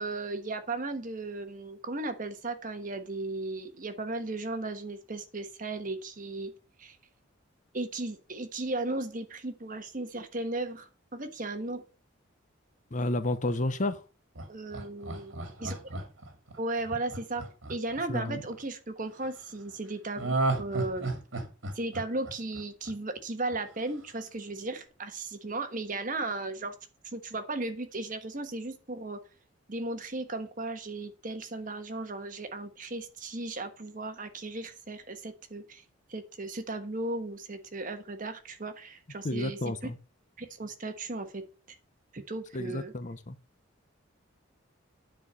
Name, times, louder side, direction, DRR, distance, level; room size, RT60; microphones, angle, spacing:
voice 1, 0.0-6.5 6.8-7.0 7.7-11.8 14.5-15.8 16.6-17.4 17.7-21.1 21.7-26.7 27.1-29.2 29.7-35.8 36.1-39.6 40.4-41.4 42.1-42.9, right 2 dB, 40° right, 1.3 m, -36 dB
voice 2, 12.9-14.0 18.1-18.4 39.2-40.0 42.5-43.4, left 1 dB, 40° left, 0.7 m, -31 dB
Laughter, 14.4-18.6 20.2-23.2 23.5-23.6, right 2 dB, 65° right, 2.2 m, -33 dB
9.8 x 4.5 x 6.3 m
head